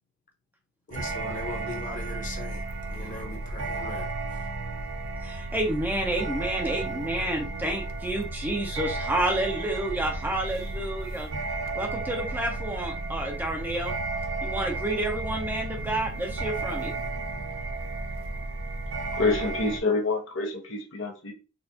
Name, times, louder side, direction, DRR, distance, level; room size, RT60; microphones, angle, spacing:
voice 1, 0.9-2.6 2.9-4.5, left 2 dB, 40° left, 1.0 m, -39 dB
sound 1, 0.9-19.8, right 2 dB, 75° right, 0.5 m, -33 dB
voice 2, 5.2-11.3 11.7-13.9 14.4-16.9, right 1 dB, 10° right, 0.6 m, -30 dB
voice 3, 19.1-21.3, left 3 dB, 80° left, 0.9 m, -27 dB
4.1 x 2.3 x 2.8 m
head